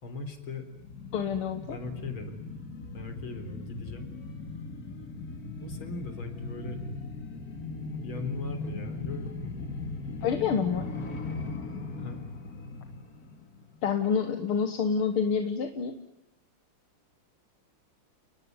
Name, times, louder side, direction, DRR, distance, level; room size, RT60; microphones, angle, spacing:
voice 1, 0.0-0.7 1.6-2.4 2.9-4.1 5.6-6.8 8.0-9.6 12.0-12.3, left 3 dB, 70° left, 8 dB, 4.6 m, -38 dB
sound 1, 0.7-13.9 14.3-14.4, left 3 dB, 45° left, 2.7 m, -39 dB
voice 2, 1.1-1.8 10.2-10.9 13.8-16.0, left 6 dB, 85° left, 8 dB, 2.4 m, -27 dB
30.0 x 20.0 x 9.6 m, 0.87 s
omnidirectional pair, 2.4 m